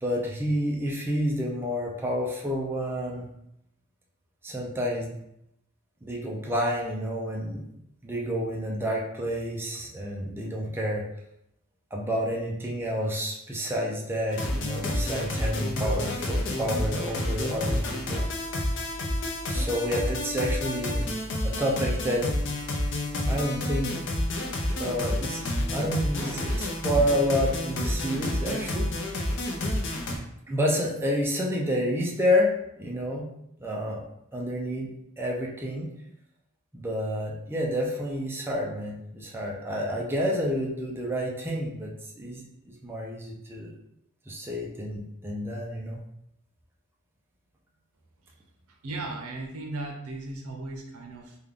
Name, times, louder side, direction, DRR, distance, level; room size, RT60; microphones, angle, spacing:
voice 1, 0.0-3.3 4.4-5.1 6.0-7.6 8.0-11.1 11.9-18.2 19.5-21.1 21.4-22.3 23.3-23.9 24.8-25.4 25.7-28.9 30.5-33.3 33.6-34.0 34.3-34.9 35.2-35.9 36.7-43.7 44.3-46.0, equal, 10° right, -2 dB, 0.5 m, -29 dB
sound 1, 14.3-30.2, left 1 dB, 60° left, 0.6 m, -29 dB
voice 2, 48.8-51.4, right 2 dB, 80° right, 2 dB, 0.7 m, -36 dB
3.4 x 2.3 x 3.6 m, 0.77 s
head